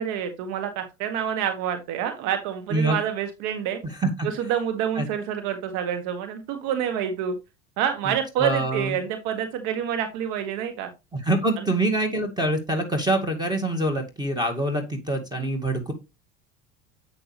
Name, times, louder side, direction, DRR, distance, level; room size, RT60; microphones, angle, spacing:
voice 1, 0.0-3.8 4.2-7.3 7.8-10.9 11.6-11.7, right 9 dB, 65° right, 7 dB, 1.6 m, -27 dB
voice 2, 8.4-9.0 11.1-15.9, right 1 dB, 10° right, 6 dB, 2.0 m, -25 dB
8.3 x 6.3 x 3.2 m, 0.24 s
supercardioid pair, 95°, 36 cm